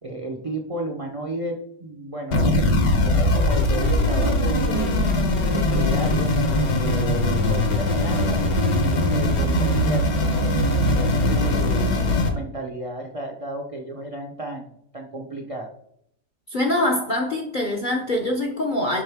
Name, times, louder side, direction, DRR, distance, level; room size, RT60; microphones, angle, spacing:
voice 1, 0.0-5.0 5.5-6.5 6.7-14.7 14.9-15.7, right 1 dB, 40° right, 1 dB, 0.5 m, -33 dB
sound 1, 2.3-12.3, left 1 dB, 65° left, 1.5 m, -21 dB
voice 2, 16.5-19.0, left 1 dB, 45° left, 1 dB, 0.7 m, -24 dB
10.5 x 3.7 x 3.5 m, 0.71 s
omnidirectional pair, 1.7 m